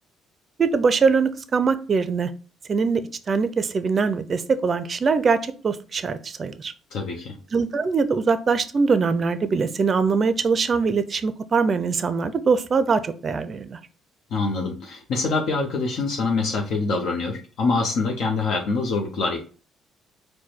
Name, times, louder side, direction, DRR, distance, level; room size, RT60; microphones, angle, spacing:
voice 1, 0.6-2.3 2.7-3.0 3.3-6.7 7.5-13.8, right 5 dB, 40° right, 12 dB, 0.4 m, -22 dB
voice 2, 6.9-7.4 14.3-19.4, left 3 dB, 70° left, 1 dB, 0.8 m, -25 dB
4.7 x 2.2 x 4.3 m, 0.37 s
cardioid pair, 100°, 0 cm